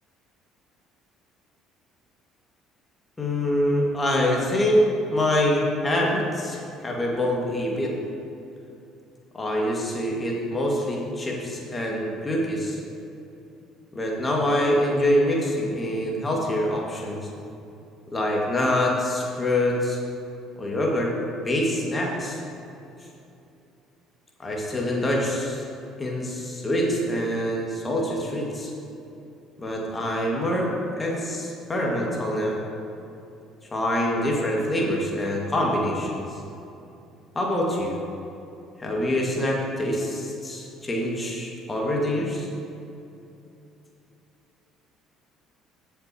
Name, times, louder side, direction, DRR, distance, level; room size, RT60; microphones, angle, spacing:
voice 1, 3.2-4.9 5.1-7.9 9.3-12.8 13.9-17.3 18.1-20.0 20.6-21.1 21.4-22.4 24.4-25.6 26.0-28.7 29.6-32.6 33.7-36.4 37.3-37.9 38.8-42.5, left 1 dB, 20° left, -2 dB, 2.2 m, -25 dB
15.5 x 7.9 x 3.1 m, 2.8 s
figure-of-eight pair, 55°, 0 cm